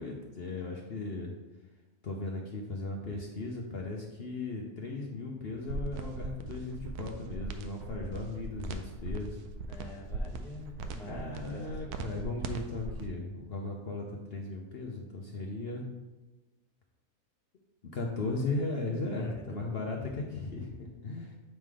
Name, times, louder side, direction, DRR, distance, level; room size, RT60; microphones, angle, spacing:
voice 1, 0.0-1.3 2.0-9.4 11.1-15.9 17.9-21.4, left 3 dB, 50° left, 0 dB, 0.8 m, -37 dB
sound 1, 5.7-13.1, right 3 dB, 85° right, 1.1 m, -39 dB
voice 2, 9.7-12.4 19.1-19.7, left 1 dB, 5° left, -2 dB, 0.6 m, -47 dB
7.6 x 3.7 x 4.8 m, 1.1 s
omnidirectional pair, 1.6 m